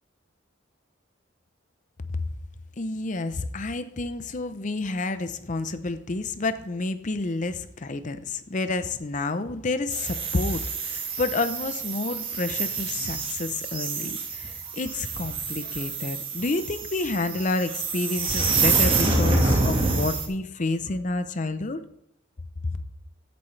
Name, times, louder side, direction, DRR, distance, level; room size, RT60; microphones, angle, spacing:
voice 1, 2.8-21.8 22.6-22.8, left 3 dB, 40° left, 0.6 m, -29 dB
sound 1, 9.9-20.3, right 3 dB, 30° right, 1.7 m, -27 dB
14.5 x 8.5 x 3.3 m
head